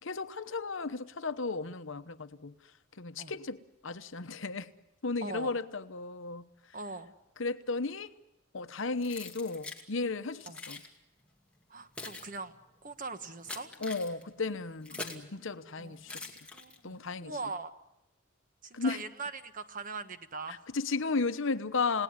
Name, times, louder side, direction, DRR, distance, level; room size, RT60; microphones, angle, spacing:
voice 1, 0.0-2.5 3.0-4.7 5.0-6.4 7.4-8.1 8.5-10.8 13.8-16.2 16.8-17.3 18.7-19.0 20.7-22.0, left 4 dB, 65° left, 11 dB, 1.0 m, -34 dB
voice 2, 5.2-5.6 6.7-7.1 10.5-10.6 11.7-12.6 12.8-13.7 14.9-15.1 15.8-17.7 18.6-20.7, right 3 dB, 40° right, 10 dB, 1.4 m, -42 dB
Keys jangling, 9.0-9.9 10.4-10.9 11.6-15.3 16.0-17.0, left 3 dB, 5° left, 2.3 m, -44 dB
29.5 x 18.0 x 9.7 m, 0.94 s
head